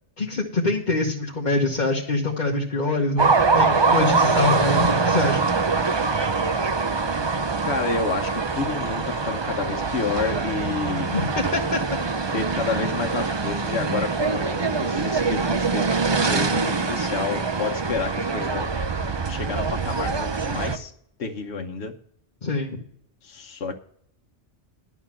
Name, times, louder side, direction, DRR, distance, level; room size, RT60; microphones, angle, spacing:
voice 1, 0.2-5.4 11.1-11.8 22.4-22.8, left 2 dB, 40° left, -2 dB, 1.2 m, -25 dB
sound 1, 3.2-20.8, right 4 dB, 30° right, 0.6 m, -24 dB
voice 2, 7.6-11.1 12.3-18.7 19.3-20.9 21.2-21.9 23.2-23.8, left 4 dB, 70° left, 2 dB, 1.1 m, -30 dB
11.5 x 5.9 x 7.5 m, 0.68 s
omnidirectional pair, 1.2 m